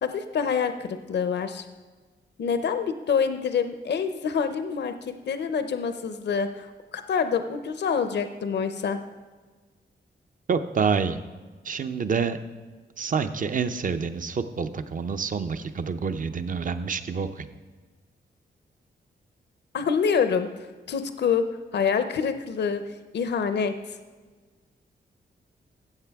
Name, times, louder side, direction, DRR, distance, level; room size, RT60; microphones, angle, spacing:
voice 1, 0.0-1.7 2.4-9.0 19.7-20.5 20.9-21.4 21.7-22.8 23.1-24.0, left 6 dB, 65° left, 9 dB, 0.7 m, -26 dB
voice 2, 10.5-11.2 11.6-12.4 13.0-17.5, right 5 dB, 45° right, 10 dB, 0.7 m, -27 dB
14.5 x 7.5 x 3.6 m, 1.4 s
cardioid pair, 70°, 19 cm